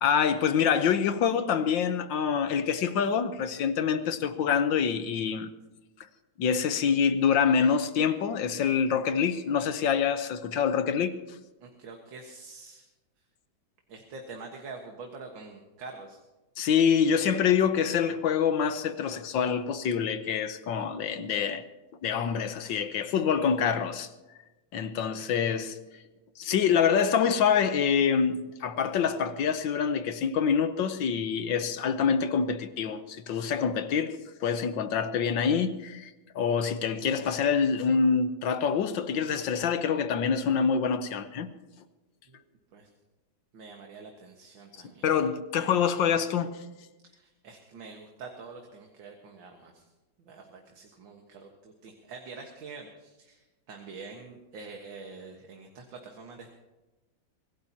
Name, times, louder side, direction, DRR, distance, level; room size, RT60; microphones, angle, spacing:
voice 1, 0.0-5.5 6.4-11.2 16.6-21.6 22.0-24.1 24.7-25.8 26.4-36.1 36.3-41.5 45.0-46.6, left 7 dB, 70° left, 1.6 m, -26 dB
voice 2, 11.6-12.9 13.9-16.2 42.3-42.4 42.7-42.9 43.5-45.1 47.0-49.9 50.2-56.5, right 4 dB, 75° right, 2.2 m, -46 dB
24.5 x 16.5 x 2.9 m
omnidirectional pair, 2.2 m